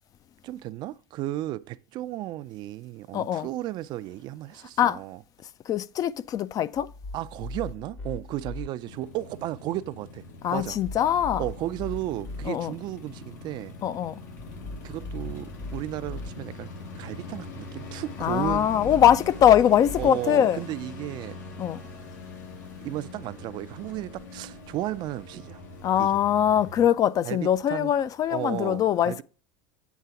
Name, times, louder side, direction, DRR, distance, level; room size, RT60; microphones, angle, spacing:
voice 1, 0.4-5.2 7.1-10.2 10.5-10.8 11.4-13.8 14.8-16.7 17.0-19.1 20.0-21.4 22.8-25.6 26.0-26.1 27.2-27.9 28.3-29.2, right 15 dB, 50° right, 0.4 m, -34 dB
voice 2, 3.1-3.5 4.8-5.0 5.7-6.9 10.4-11.4 12.5-12.7 13.8-14.2 18.2-20.6 21.6-21.8 25.8-29.2, left 10 dB, 40° left, 0.4 m, -22 dB
sound 1, 6.8-8.7 10.6-12.5 14.4-16.3 18.2-20.1, left 2 dB, 20° left, 0.8 m, -39 dB
sound 2, 8.8-26.9, left 3 dB, 90° left, 2.9 m, -43 dB
sound 3, 14.4-21.3, left 4 dB, 70° left, 3.4 m, -54 dB
8.3 x 3.7 x 5.6 m
supercardioid pair, 110°, 10 cm